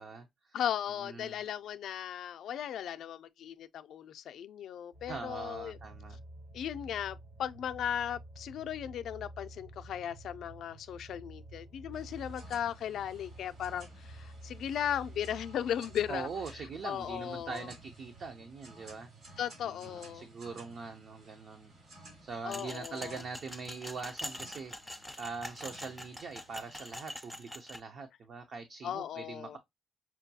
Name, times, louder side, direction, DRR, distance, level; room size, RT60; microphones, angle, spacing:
voice 1, 0.0-0.6 1.0-1.4 5.1-6.2 16.1-19.1 19.7-21.7 22.2-29.6, right 4 dB, 50° right, 0.5 m, -43 dB
voice 2, 0.5-5.8 6.5-16.3 16.8-17.7 19.4-20.3 22.4-23.2 28.8-29.6, left 9 dB, 75° left, 0.3 m, -37 dB
sound 1, 4.9-22.4 22.8-22.9, right 2 dB, 70° right, 2.1 m, -51 dB
sound 2, 11.9-26.9, right 2 dB, 85° right, 3.0 m, -56 dB
sound 3, 22.5-27.8, equal, ahead, 0.4 m, -44 dB
5.6 x 2.2 x 2.7 m
cardioid pair, 155°, 0 cm